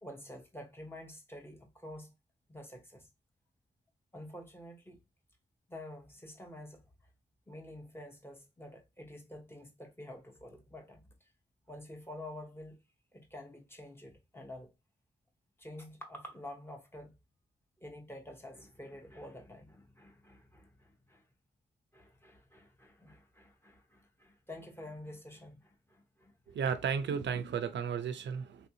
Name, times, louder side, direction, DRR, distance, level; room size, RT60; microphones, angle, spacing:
voice 1, 0.0-2.1 2.5-3.1 4.1-5.0 5.7-6.8 7.5-11.0 11.7-12.8 13.1-14.7 15.6-17.1 17.8-21.2 21.9-26.6, left 1 dB, 15° left, 0.7 m, -49 dB
voice 2, 26.5-28.7, right 6 dB, 80° right, 0.4 m, -34 dB
3.4 x 2.5 x 2.7 m
wide cardioid pair, 125°, 18 cm